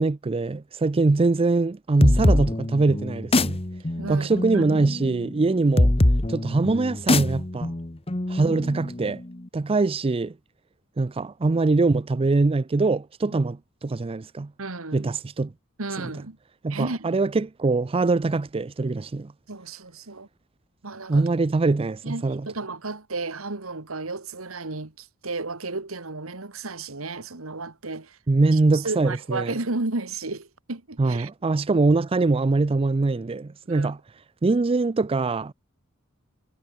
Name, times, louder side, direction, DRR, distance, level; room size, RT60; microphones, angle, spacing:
voice 1, 0.0-3.6 4.1-5.9 6.3-7.7 8.3-9.2 9.5-10.3 11.0-14.5 14.9-15.5 16.6-19.3 21.1-22.4 28.3-29.6 31.0-34.0 34.4-35.5, right 3 dB, 25° right, 0.4 m, -23 dB
sound 1, 2.0-9.4, left 1 dB, 30° left, 1.2 m, -24 dB
voice 2, 4.0-4.3 4.5-4.6 13.3-13.4 14.6-15.1 15.8-16.4 16.7-17.1 19.5-20.3 20.8-21.3 22.0-28.2 28.5-31.3 33.7-33.9, right 3 dB, 80° right, 2.0 m, -33 dB
head